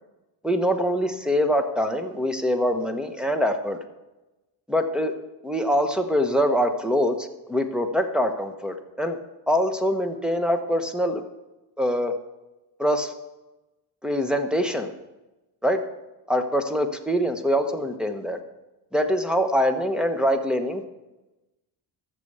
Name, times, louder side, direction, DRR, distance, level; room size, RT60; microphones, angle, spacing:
voice 1, 0.4-3.8 4.7-5.1 5.4-9.2 9.5-11.2 11.8-12.1 12.8-13.1 14.0-14.9 15.6-15.8 16.3-18.4 18.9-20.9, equal, ahead, 7 dB, 1.0 m, -24 dB
13.0 x 6.9 x 6.7 m, 1.1 s
cardioid pair, 115°, 47 cm